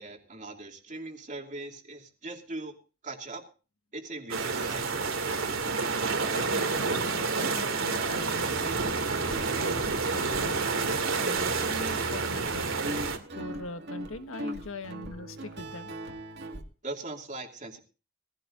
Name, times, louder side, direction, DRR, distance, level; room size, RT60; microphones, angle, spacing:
voice 1, 0.0-2.7 3.0-3.4 3.9-5.1 16.8-17.8, right 2 dB, 35° right, 3 dB, 2.6 m, -40 dB
sound 1, 4.3-13.2, right 4 dB, 85° right, 2.4 m, -29 dB
voice 2, 6.3-9.0 9.6-10.7 11.2-12.7 13.3-16.2, left 2 dB, 85° left, 9 dB, 1.5 m, -42 dB
Guitar, 8.3-16.6, right 1 dB, 55° right, 2.1 m, -40 dB
19.5 x 16.0 x 2.6 m, 0.34 s
head